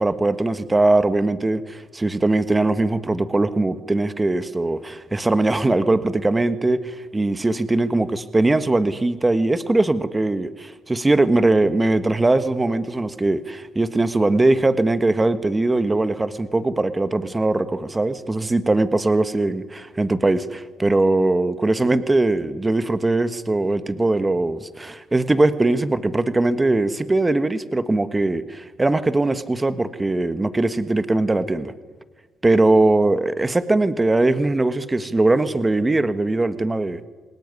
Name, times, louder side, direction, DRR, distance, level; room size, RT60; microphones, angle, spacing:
voice 1, 0.0-31.7 32.4-37.1, right 2 dB, 20° right, 12 dB, 1.4 m, -20 dB
28.0 x 20.0 x 9.8 m, 1.4 s
cardioid pair, 90°, 0 cm